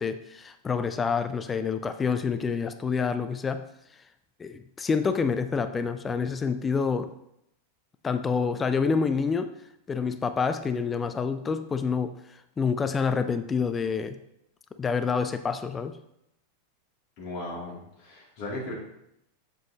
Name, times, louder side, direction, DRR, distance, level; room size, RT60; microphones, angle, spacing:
voice 1, 0.0-3.6 4.4-7.1 8.0-9.5 9.9-14.2 14.8-16.0, left 5 dB, 15° left, 10 dB, 0.4 m, -27 dB
voice 2, 17.2-18.7, left 1 dB, 45° left, -5 dB, 2.6 m, -37 dB
7.7 x 7.6 x 2.8 m, 0.79 s
figure-of-eight pair, 90°, 0 cm